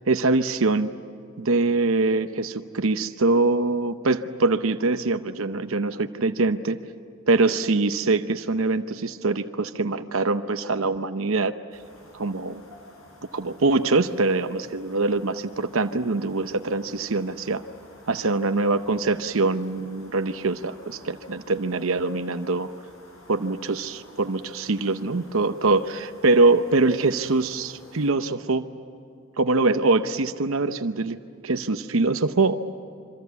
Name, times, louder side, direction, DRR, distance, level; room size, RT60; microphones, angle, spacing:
voice 1, 0.1-0.9 1.4-6.8 7.3-11.5 12.1-12.6 13.3-17.6 18.1-22.7 23.3-28.6 29.4-31.2 31.4-32.5, right 3 dB, 65° right, 9 dB, 0.8 m, -23 dB
sound 1, 11.7-28.1, left 1 dB, 70° left, 6.6 m, -51 dB
26.5 x 25.0 x 8.3 m, 2.5 s
head